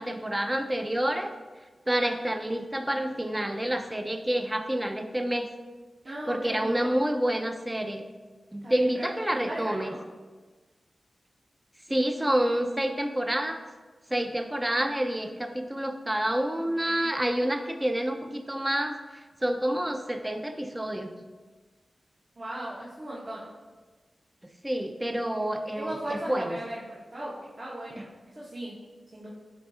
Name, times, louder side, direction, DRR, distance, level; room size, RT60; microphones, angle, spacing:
voice 1, 0.0-1.3 1.9-5.5 6.3-8.0 8.5-9.9 11.9-13.6 14.1-19.0 19.4-21.1 24.6-26.6, right 1 dB, 15° right, 6 dB, 0.5 m, -28 dB
voice 2, 6.0-6.9 8.6-10.0 16.7-17.1 22.4-23.5 25.8-28.7 29.1-29.3, right 1 dB, 45° right, -8 dB, 1.5 m, -38 dB
9.1 x 3.5 x 3.6 m, 1.3 s
wide cardioid pair, 80°, 0 cm